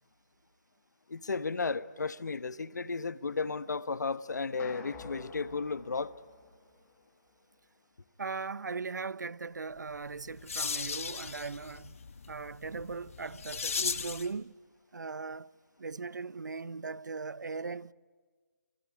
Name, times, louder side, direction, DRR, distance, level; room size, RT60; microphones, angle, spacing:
voice 1, 1.1-6.1, left 4 dB, 75° left, 1.1 m, -34 dB
sound 1, 4.6-7.1, left 4 dB, 10° left, 1.8 m, -50 dB
voice 2, 8.2-12.0 12.3-14.5 14.9-15.5 15.8-17.9, right 4 dB, 85° right, 0.7 m, -39 dB
sound 2, 9.9-14.3, left 5 dB, 50° left, 1.6 m, -37 dB
28.0 x 21.0 x 9.5 m
hypercardioid pair, 170°, 10 cm